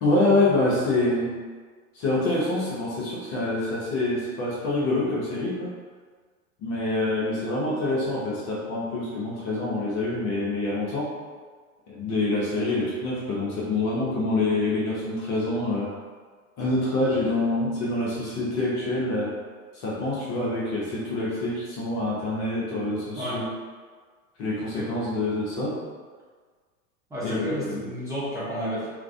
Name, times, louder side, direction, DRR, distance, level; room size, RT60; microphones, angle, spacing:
voice 1, 0.0-1.4 1.9-5.8 6.6-11.1 11.9-15.9 16.6-19.3 19.7-23.4 24.4-25.8 27.2-27.8, left 2 dB, 35° left, -5 dB, 0.6 m, -26 dB
voice 2, 27.1-28.9, equal, 5° right, -11 dB, 0.6 m, -31 dB
2.4 x 2.1 x 2.4 m, 1.5 s
hypercardioid pair, 95°, 43 cm